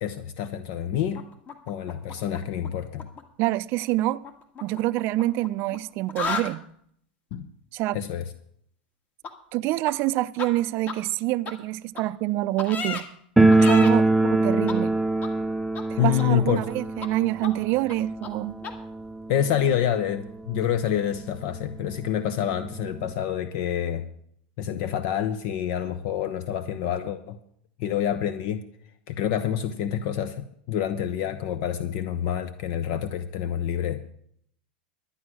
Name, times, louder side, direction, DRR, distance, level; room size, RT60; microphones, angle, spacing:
voice 1, 0.0-1.2 1.7-3.1 7.3-7.5 7.9-8.2 16.0-16.7 19.3-24.0 24.6-27.4 27.8-28.6 29.1-34.1, left 10 dB, 55° left, 0.9 m, -27 dB
sound 1, 1.2-2.7 2.9-3.2 4.2-5.8 6.0-6.5 9.2-9.3 9.9-10.0 10.4-10.5 10.9-11.0 11.4-11.5 12.0-12.1 12.6-13.0 13.5-13.9 14.7-14.8 15.2-15.3 15.7-15.8 16.2-16.7 17.0-17.1 17.4-17.5 17.9-18.0 18.2-18.3 18.6-18.7, left 5 dB, 35° left, 1.9 m, -33 dB
voice 2, 3.4-4.2 4.6-6.6 7.7-8.0 9.5-13.1 13.6-14.9 15.9-18.6, right 17 dB, 50° right, 0.5 m, -26 dB
sound 2, 13.4-20.1 20.3-20.4 20.7-20.8 21.5-21.6 21.9-23.1, right 2 dB, ahead, 0.6 m, -23 dB
12.0 x 9.9 x 6.3 m
hypercardioid pair, 115°, 5 cm